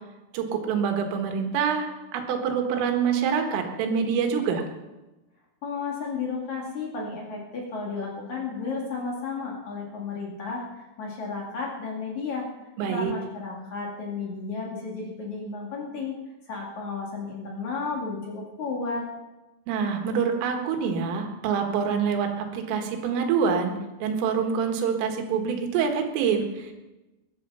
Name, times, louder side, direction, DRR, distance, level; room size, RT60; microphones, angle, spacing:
voice 1, 0.3-4.6 12.8-13.2 19.7-26.7, right 6 dB, 90° right, 4 dB, 4.3 m, -26 dB
voice 2, 5.6-12.5 12.9-16.2 16.5-19.0, left 4 dB, 45° left, -2 dB, 3.1 m, -33 dB
21.5 x 10.5 x 5.6 m, 1.1 s
omnidirectional pair, 5.6 m